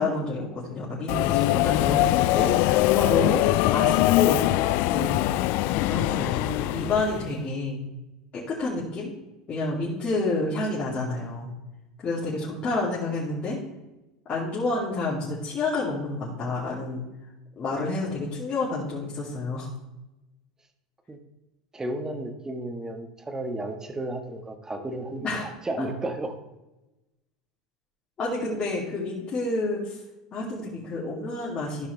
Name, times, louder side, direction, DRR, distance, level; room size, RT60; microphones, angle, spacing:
voice 1, 0.0-3.4 3.7-4.4 4.8-5.2 5.7-7.8 8.3-9.1 9.5-11.5 12.0-13.6 14.3-17.0 17.5-19.7 25.2-25.4 28.2-30.0 30.3-31.9, left 3 dB, 35° left, -7 dB, 2.7 m, -29 dB
Subway metro underground, 1.1-7.3, left 16 dB, 60° left, 0.4 m, -22 dB
voice 2, 21.7-26.3, right 1 dB, 15° right, 6 dB, 1.5 m, -33 dB
14.0 x 5.7 x 3.3 m, 1.0 s
hypercardioid pair, 90°, 4 cm